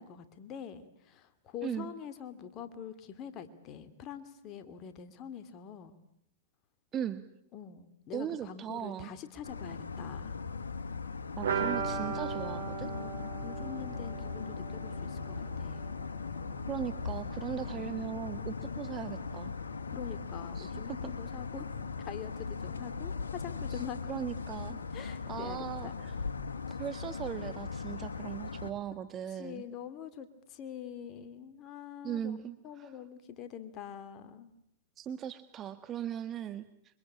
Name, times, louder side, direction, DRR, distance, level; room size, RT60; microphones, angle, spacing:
voice 1, 0.0-6.0 7.5-10.5 12.8-15.8 17.5-18.3 19.9-24.0 24.9-26.0 29.3-32.4 32.6-34.5, left 8 dB, 35° left, 10 dB, 2.6 m, -45 dB
voice 2, 6.9-7.2 8.1-9.1 11.4-12.9 16.7-19.5 20.5-21.1 23.7-23.8 24.1-26.2 26.7-29.6 32.0-32.9 35.0-37.0, right 10 dB, 30° right, 10 dB, 1.5 m, -39 dB
sound 1, 9.4-28.7, left 5 dB, 80° left, 2.2 m, -39 dB
sound 2, 11.4-17.0 17.3-17.4 17.7-17.8, right 6 dB, 75° right, 5.7 m, -37 dB
26.5 x 25.5 x 8.7 m, 0.74 s
hypercardioid pair, 110°, 0 cm